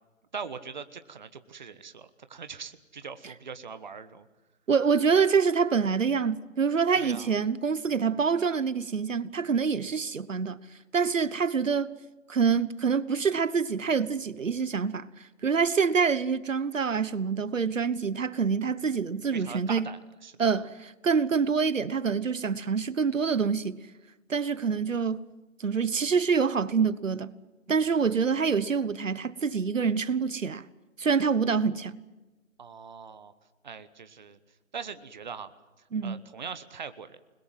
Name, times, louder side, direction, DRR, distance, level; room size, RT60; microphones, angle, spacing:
voice 1, 0.3-4.3 6.9-7.3 19.3-20.4 32.6-33.3 33.6-34.4 34.7-35.5 36.0-37.2, right 6 dB, 35° right, 1.2 m, -41 dB
voice 2, 4.7-10.6 10.9-11.9 12.3-15.1 15.4-19.9 20.4-23.9 24.3-25.2 25.6-27.3 27.7-30.6 31.0-32.0 35.9-36.2, right 5 dB, 65° right, 1.2 m, -26 dB
29.0 x 21.5 x 7.6 m
figure-of-eight pair, 165°, 41 cm